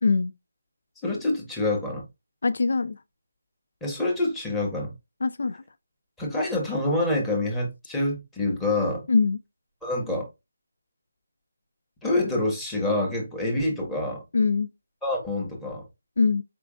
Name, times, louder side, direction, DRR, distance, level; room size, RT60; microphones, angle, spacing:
voice 1, 0.0-0.3 2.4-3.0 5.2-5.6 9.1-9.4 14.3-14.7 16.2-16.4, left 4 dB, 65° left, 0.4 m, -22 dB
voice 2, 1.0-2.0 3.8-4.9 6.2-9.0 9.8-10.3 12.0-14.2 15.0-15.8, left 2 dB, 5° left, 1.5 m, -26 dB
5.1 x 3.3 x 2.4 m
figure-of-eight pair, 160°, 0 cm